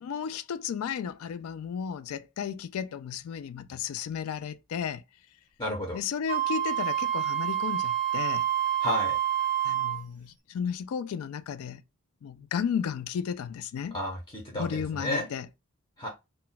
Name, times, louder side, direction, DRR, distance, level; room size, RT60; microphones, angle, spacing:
voice 1, 0.0-5.0 5.9-8.4 9.6-11.8 12.2-14.0 14.5-15.5, left 7 dB, 75° left, 0.3 m, -34 dB
voice 2, 5.6-6.0 8.8-9.2 13.9-14.7 14.9-15.3 16.0-16.1, left 1 dB, 20° left, 0.6 m, -31 dB
Wind instrument woodwind instrument, 6.3-10.0, right 11 dB, 35° right, 0.6 m, -28 dB
2.2 x 2.2 x 3.9 m
head